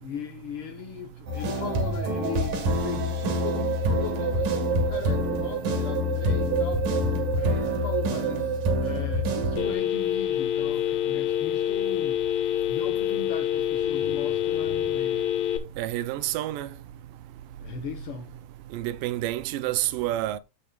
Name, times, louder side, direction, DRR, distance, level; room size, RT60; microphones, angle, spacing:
voice 1, 0.0-6.9 7.4-15.4 17.6-18.3, left 8 dB, 85° left, 1.2 m, -38 dB
sound 1, 1.3-9.7, right 1 dB, 65° right, 3.4 m, -26 dB
Telephone, 9.6-15.6, left 11 dB, 65° left, 2.2 m, -26 dB
voice 2, 15.8-16.7 18.7-20.4, right 14 dB, 80° right, 2.2 m, -28 dB
15.5 x 5.1 x 2.4 m
omnidirectional pair, 4.0 m